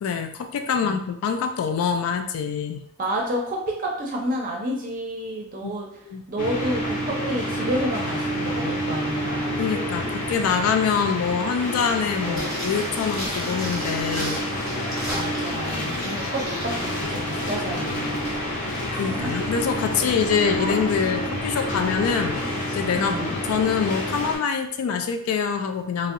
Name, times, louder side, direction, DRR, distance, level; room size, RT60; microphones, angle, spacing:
voice 1, 0.0-2.8 5.6-5.7 6.1-6.2 9.6-14.4 18.9-22.4 22.7-26.1, left 6 dB, 80° left, 9 dB, 0.3 m, -25 dB
voice 2, 0.7-1.0 3.0-5.9 6.3-9.7 12.2-12.5 15.1-18.3 19.1-19.3 22.9-23.4, equal, 40° right, -1 dB, 0.5 m, -30 dB
sound 1, 6.4-24.4, equal, 35° left, 0.6 m, -28 dB
sound 2, 12.3-16.7 17.0-17.1, equal, ahead, 0.7 m, -35 dB
2.6 x 2.0 x 2.4 m, 0.68 s
head